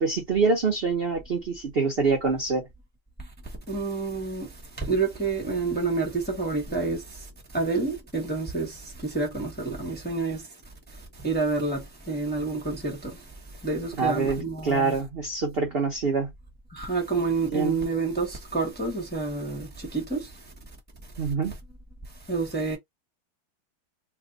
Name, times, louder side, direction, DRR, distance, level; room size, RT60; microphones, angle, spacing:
voice 1, 0.0-2.7 14.0-16.3 17.5-17.8 21.2-21.6, right 4 dB, 65° right, 0.5 m, -25 dB
voice 2, 3.7-4.5 4.8-7.3 7.5-10.5 11.2-13.2 13.6-14.9 16.7-20.3 22.3-22.8, right 3 dB, 10° left, 0.6 m, -28 dB
3.4 x 2.2 x 3.8 m
omnidirectional pair, 2.2 m